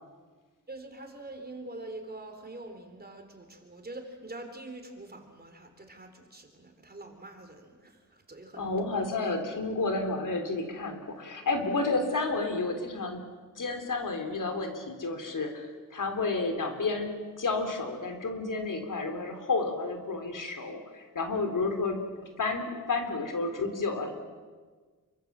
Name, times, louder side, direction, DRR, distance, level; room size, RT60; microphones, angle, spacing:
voice 1, 0.7-8.9, right 2 dB, 30° right, 5 dB, 3.9 m, -45 dB
voice 2, 8.5-13.2 13.6-24.1, left 3 dB, 70° left, 5 dB, 3.7 m, -31 dB
28.0 x 24.5 x 7.6 m, 1.4 s
wide cardioid pair, 130°, 32 cm